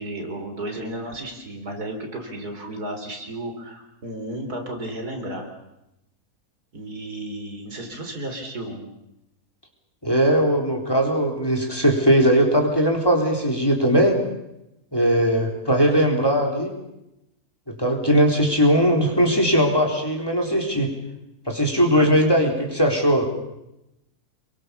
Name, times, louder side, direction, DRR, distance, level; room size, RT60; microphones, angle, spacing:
voice 1, 0.0-5.5 6.7-8.8 21.9-22.2, right 1 dB, 75° right, 3 dB, 4.5 m, -33 dB
voice 2, 10.0-14.2 14.9-16.7 17.7-20.9 21.5-23.3, equal, 15° left, 1 dB, 4.0 m, -19 dB
28.5 x 22.5 x 7.1 m, 0.89 s
omnidirectional pair, 1.7 m